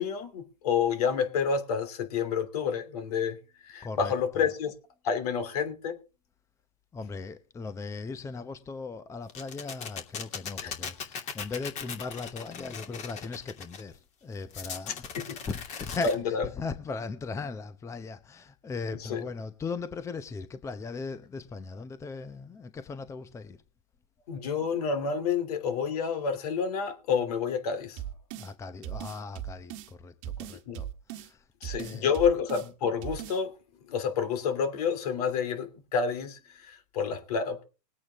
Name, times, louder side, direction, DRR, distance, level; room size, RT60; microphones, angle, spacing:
voice 1, 0.0-3.4 3.6-4.7 5.0-6.0 10.6-10.7 14.9-15.4 16.0-16.5 19.0-19.2 24.3-28.0 30.7-30.8 31.6-33.5 33.9-37.6, left 6 dB, 70° left, 3.0 m, -29 dB
voice 2, 3.8-4.5 6.9-23.6 28.3-31.4 31.8-32.1, left 4 dB, 15° left, 0.8 m, -38 dB
sound 1, 9.3-13.8 14.5-16.1, left 6 dB, 35° left, 2.7 m, -38 dB
sound 2, 28.0-28.5 28.8-29.9 30.2-31.3 31.6-32.7 33.0-33.4, right 11 dB, 55° right, 1.4 m, -38 dB
20.5 x 8.6 x 3.6 m
hypercardioid pair, 130°, 20 cm